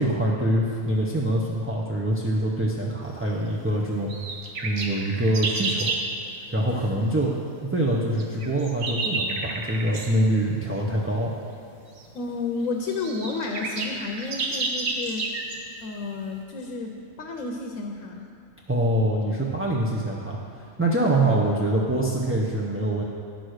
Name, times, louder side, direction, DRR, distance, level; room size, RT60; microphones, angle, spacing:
voice 1, 0.0-4.1 4.6-5.9 6.5-7.3 7.6-11.3 18.7-23.0, right 1 dB, 15° right, -4 dB, 0.4 m, -24 dB
sound 1, 4.1-6.1 8.2-10.1 12.0-12.1 12.6-12.7 12.9-15.6, right 3 dB, 75° right, 1.4 m, -30 dB
voice 2, 12.1-15.5 15.8-16.9 17.2-18.3 21.2-21.4, left 3 dB, 75° left, 2 dB, 1.2 m, -31 dB
9.8 x 6.3 x 6.4 m, 2.7 s
omnidirectional pair, 1.4 m